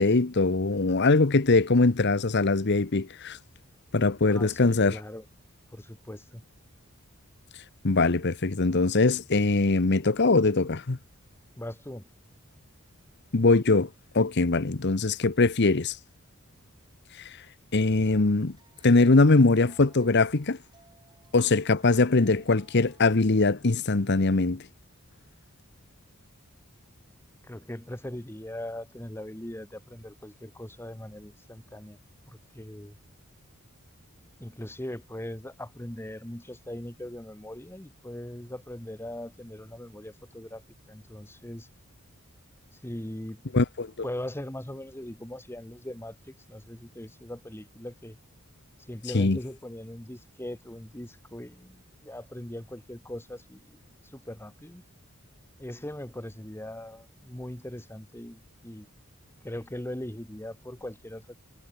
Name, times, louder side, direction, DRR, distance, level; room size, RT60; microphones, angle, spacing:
voice 1, 0.0-3.4 3.9-5.0 7.8-11.0 13.3-13.9 14.1-16.0 17.7-18.5 18.8-20.6 21.3-24.6 43.5-43.9 49.1-49.4, left 3 dB, 50° left, 0.9 m, -22 dB
voice 2, 4.3-5.3 5.7-6.4 11.6-12.1 27.4-32.0 32.3-33.0 34.4-40.6 40.9-41.7 42.8-43.4 44.0-48.2 48.9-54.8 55.6-58.9 59.4-61.3, left 1 dB, 10° left, 1.2 m, -40 dB
sound 1, 17.8-23.1, right 3 dB, 20° right, 7.3 m, -61 dB
head